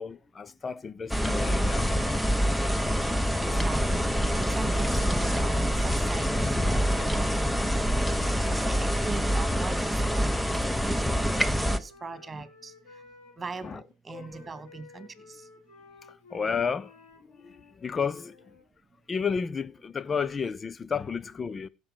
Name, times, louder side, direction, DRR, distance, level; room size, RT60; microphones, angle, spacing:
voice 1, 0.0-1.9 6.8-6.9 8.1-8.5 12.3-12.4 13.6-13.8 14.1-14.5 16.1-16.9 17.2-18.6 19.1-21.7, left 6 dB, 30° left, 0.8 m, -32 dB
sound 1, 1.1-11.8, equal, 5° left, 1.0 m, -26 dB
voice 2, 3.1-7.7 8.5-10.6 10.8-12.7 13.4-15.4, right 4 dB, 20° right, 2.4 m, -40 dB
Wind instrument woodwind instrument, 10.4-13.8 14.1-18.6, left 4 dB, 80° left, 4.2 m, -54 dB
16.0 x 6.4 x 5.1 m
hypercardioid pair, 80°, 0 cm